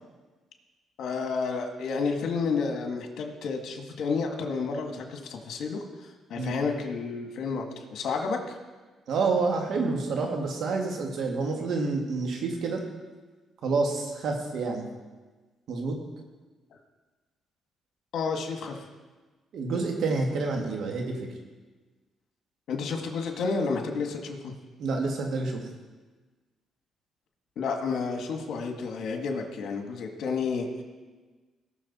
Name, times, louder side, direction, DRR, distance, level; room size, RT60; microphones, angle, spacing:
voice 1, 1.0-8.6 18.1-18.9 22.7-24.5 27.5-30.7, left 4 dB, 70° left, 3 dB, 1.7 m, -31 dB
voice 2, 9.1-12.8 13.6-14.9 15.7-16.0 19.5-21.3 24.8-25.7, right 3 dB, 70° right, 2 dB, 2.0 m, -28 dB
18.0 x 6.4 x 4.2 m, 1.3 s
cardioid pair, 90°, 0 cm